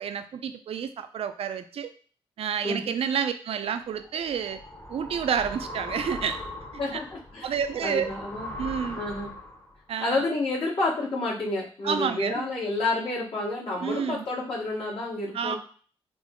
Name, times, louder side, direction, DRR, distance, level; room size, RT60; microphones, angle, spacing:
voice 1, 0.0-1.9 2.4-4.6 4.9-6.4 6.9-7.0 7.4-8.1 8.6-9.0 9.9-10.2 11.8-12.5 13.8-14.2 15.3-15.6, right 7 dB, 70° right, 9 dB, 0.4 m, -29 dB
sound 1, 3.9-9.7, left 1 dB, 20° left, 1.0 m, -39 dB
voice 2, 6.8-8.5 8.9-9.3 10.0-15.6, left 2 dB, 65° left, -6 dB, 1.5 m, -30 dB
3.7 x 2.0 x 3.7 m, 0.42 s
cardioid pair, 80°, 10 cm